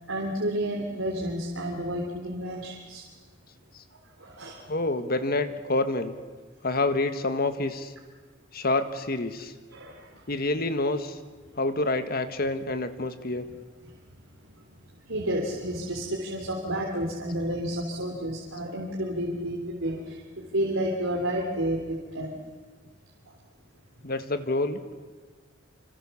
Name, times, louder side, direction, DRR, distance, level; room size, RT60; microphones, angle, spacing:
voice 1, 0.1-3.0 4.2-4.7 9.7-10.2 13.5-13.6 13.8-14.0 14.4-22.4 23.3-23.4, right 1 dB, 90° right, -1 dB, 3.3 m, -31 dB
voice 2, 4.7-6.1 6.6-7.9 8.5-9.5 10.3-11.2 11.6-13.5 24.0-24.8, left 2 dB, 50° left, 9 dB, 1.6 m, -27 dB
27.0 x 26.0 x 7.2 m, 1.4 s
head